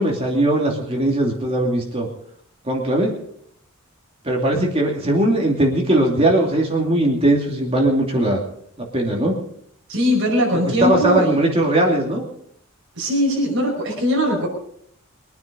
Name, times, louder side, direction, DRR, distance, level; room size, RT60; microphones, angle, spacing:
voice 1, 0.0-2.1 2.6-3.1 4.2-8.4 8.9-9.4 10.7-12.2, right 1 dB, 25° right, 0 dB, 2.7 m, -19 dB
voice 2, 9.9-11.4 12.1-12.2 12.9-14.5, equal, 55° right, -1 dB, 5.3 m, -20 dB
23.0 x 9.5 x 5.1 m, 0.67 s
head